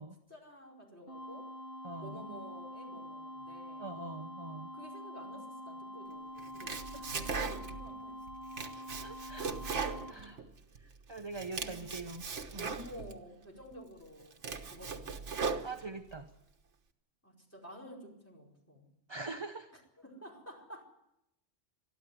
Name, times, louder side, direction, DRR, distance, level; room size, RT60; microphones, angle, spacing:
voice 1, 0.3-1.5 2.0-3.9 4.7-6.8 7.1-8.5 10.1-10.5 11.5-12.2 12.6-14.4 14.7-15.2 17.2-18.9 19.7-20.8, equal, 10° left, -1 dB, 4.7 m, -51 dB
sound 1, 1.1-10.1, equal, 50° left, 1.4 m, -46 dB
voice 2, 1.8-2.2 3.8-4.7 6.9-7.0 9.0-9.5 9.9-10.4 11.1-12.2 12.5-12.7 15.6-16.3 19.1-19.7, right 3 dB, 25° right, 5 dB, 1.0 m, -43 dB
Domestic sounds home sounds, 6.4-7.9 8.3-10.8 11.2-13.2 13.7-13.8 14.2-16.2, right 5 dB, 70° right, 1.6 m, -38 dB
22.5 x 12.5 x 9.6 m, 0.85 s
omnidirectional pair, 1.2 m